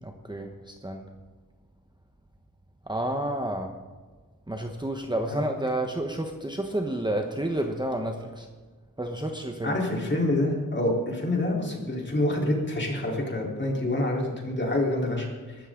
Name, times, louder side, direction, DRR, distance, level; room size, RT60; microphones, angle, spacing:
voice 1, 0.0-1.0 2.9-3.7 4.5-8.5 9.0-9.7, right 1 dB, 15° right, 3 dB, 1.1 m, -30 dB
voice 2, 9.6-15.3, left 1 dB, 35° left, -1 dB, 4.0 m, -27 dB
22.0 x 13.0 x 3.9 m, 1.4 s
wide cardioid pair, 110°, 33 cm